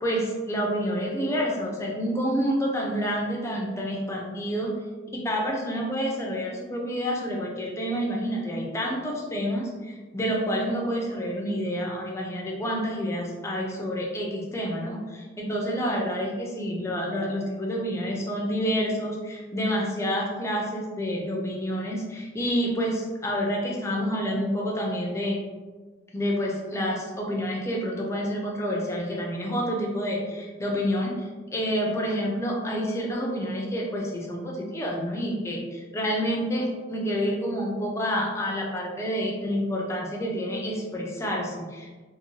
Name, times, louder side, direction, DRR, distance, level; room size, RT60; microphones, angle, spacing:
voice 1, 0.0-4.7 5.1-25.4 26.1-42.0, equal, 15° left, -1 dB, 0.4 m, -28 dB
2.6 x 2.5 x 3.0 m, 1.4 s
head